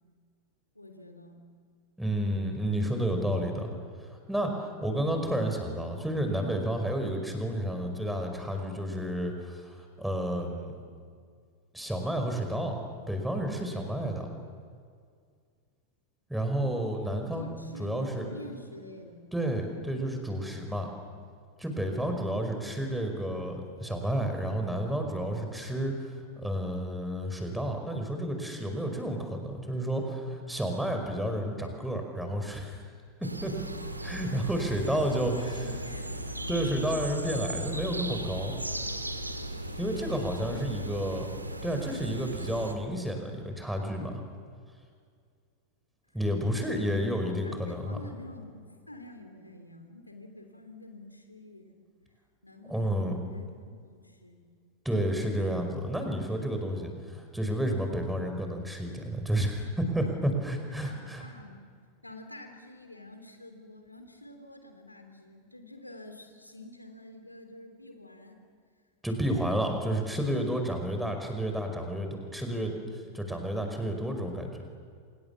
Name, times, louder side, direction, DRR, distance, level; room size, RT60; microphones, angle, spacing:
voice 1, 0.7-1.4 5.9-6.0 11.1-11.4 17.3-19.2 22.4-22.7 35.2-36.1 40.5-40.9 46.5-51.8 52.4-54.5 60.7-61.7 62.0-68.4, left 1 dB, 85° left, 5 dB, 3.2 m, -47 dB
voice 2, 2.0-3.7 4.3-10.7 11.7-12.7 13.1-14.3 16.3-17.5 17.8-18.3 19.3-20.9 21.6-26.0 26.4-32.8 33.2-33.5 34.0-35.7 36.5-38.6 39.8-41.2 41.6-44.2 46.1-48.0 52.7-53.2 54.8-61.2 69.0-72.7 73.1-74.6, right 1 dB, 5° right, 4 dB, 5.2 m, -31 dB
sound 1, 33.2-42.7, right 1 dB, 85° right, 2.4 m, -37 dB
29.5 x 27.0 x 7.2 m, 2.1 s
figure-of-eight pair, 90°, 0 cm